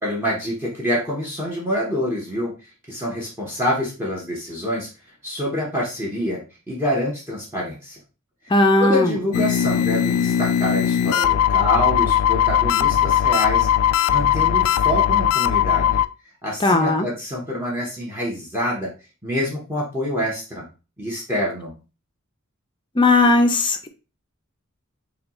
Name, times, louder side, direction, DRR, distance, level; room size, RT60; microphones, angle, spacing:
voice 1, 0.0-2.5 2.9-4.9 5.2-6.4 6.7-8.0 8.8-13.7 14.1-16.0 16.4-18.9 19.2-20.6 21.0-21.8, equal, 10° right, -4 dB, 1.2 m, -26 dB
voice 2, 8.5-9.1 16.6-17.1 23.0-23.9, left 2 dB, 20° left, 5 dB, 0.6 m, -17 dB
sound 1, 9.3-16.1, left 10 dB, 85° left, 0.3 m, -19 dB
6.4 x 2.4 x 3.1 m, 0.31 s
head